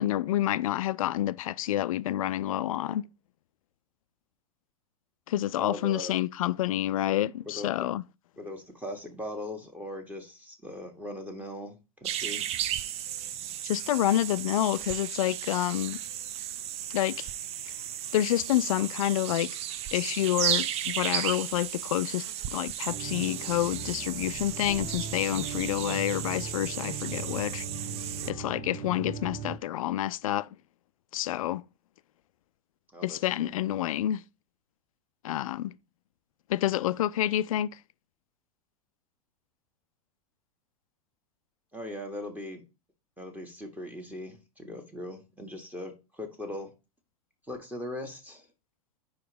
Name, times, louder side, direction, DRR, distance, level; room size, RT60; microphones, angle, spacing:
voice 1, 0.0-3.1 5.3-8.0 13.6-16.0 16.9-17.3 17.7-17.8 18.1-19.6 19.9-27.9 28.3-30.5 31.1-31.6 33.0-34.2 35.2-35.7 36.5-37.8, left 13 dB, 65° left, 0.4 m, -28 dB
voice 2, 5.6-6.2 7.4-7.7 8.4-12.5 32.9-33.5 41.7-42.6 43.2-46.7 47.5-48.5, left 1 dB, 10° right, 1.6 m, -39 dB
sound 1, 12.0-28.3, right 11 dB, 35° right, 0.5 m, -34 dB
sound 2, 22.8-29.6, right 5 dB, 70° right, 1.5 m, -39 dB
5.1 x 4.7 x 5.0 m
figure-of-eight pair, 90°, 19 cm